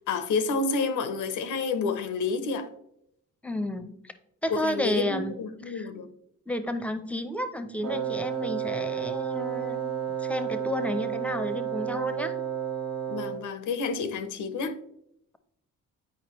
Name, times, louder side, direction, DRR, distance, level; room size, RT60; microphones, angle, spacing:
voice 1, 0.0-2.7 4.5-6.1 13.1-14.8, left 4 dB, 80° left, 0.9 m, -29 dB
voice 2, 3.4-4.1 4.4-5.3 5.7-5.9 6.5-12.3, left 1 dB, 5° left, 0.8 m, -32 dB
Wind instrument woodwind instrument, 7.8-13.5, right 9 dB, 55° right, 1.1 m, -31 dB
8.9 x 4.9 x 3.1 m
cardioid pair, 90°, 30 cm